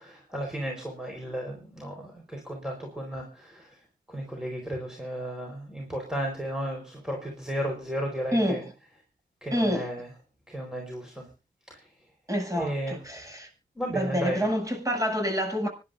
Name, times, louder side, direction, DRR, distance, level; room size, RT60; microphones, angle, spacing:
voice 1, 0.0-3.8 4.1-8.6 9.4-10.1 10.5-11.2 11.7-11.9 12.5-13.0 13.7-14.4, equal, 5° right, 4.5 m, -34 dB
voice 2, 8.3-8.7 9.5-9.9 12.3-13.5 13.9-15.7, equal, 20° right, 7.3 m, -27 dB
25.5 x 11.5 x 2.6 m
cardioid pair, 75°, 17 cm